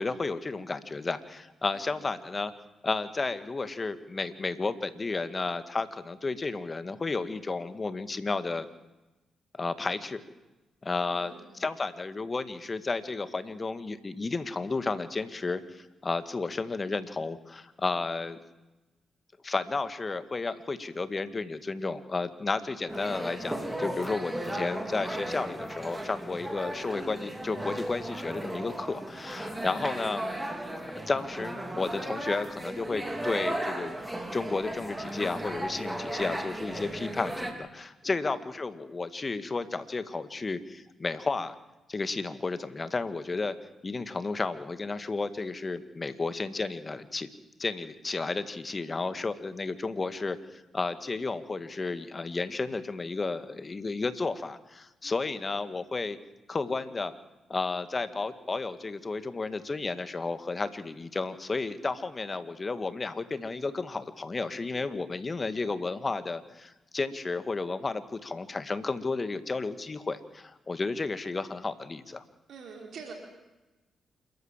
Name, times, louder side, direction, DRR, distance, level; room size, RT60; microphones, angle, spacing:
voice 1, 0.0-2.5 2.8-8.7 9.6-10.2 10.8-11.3 11.6-18.4 19.4-30.2 31.1-33.9 34.3-41.6 41.9-43.6 43.8-47.3 47.6-56.2 56.5-57.1 57.5-72.2, left 3 dB, 35° left, 12 dB, 1.9 m, -32 dB
voice 2, 1.7-2.3 11.1-11.6 23.9-24.3 29.6-30.0 38.0-38.3 55.0-55.2 61.8-61.9 72.5-73.1, right 5 dB, 70° right, 2 dB, 4.2 m, -47 dB
sound 1, 22.9-37.5, right 1 dB, 15° right, 4.3 m, -35 dB
28.0 x 13.5 x 7.5 m, 1.0 s
hypercardioid pair, 45°, 0 cm